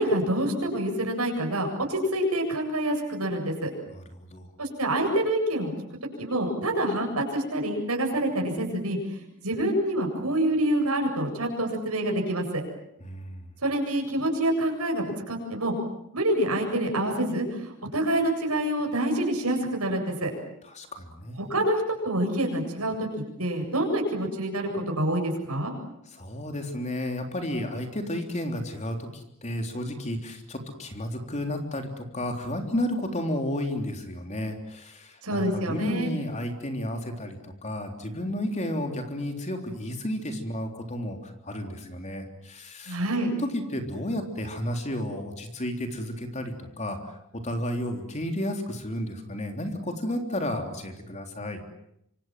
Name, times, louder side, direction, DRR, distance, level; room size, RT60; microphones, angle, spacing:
voice 1, 0.0-3.7 4.6-5.7 6.2-9.0 9.4-12.6 13.6-15.7 16.1-20.3 21.4-23.1 23.4-25.7 35.2-36.1 42.9-43.3, right 1 dB, 85° right, 2 dB, 7.8 m, -27 dB
voice 2, 3.9-4.5 13.0-13.5 20.6-21.5 26.1-43.0 43.4-51.6, left 1 dB, 30° left, 5 dB, 3.6 m, -32 dB
26.5 x 26.0 x 7.7 m, 0.77 s
head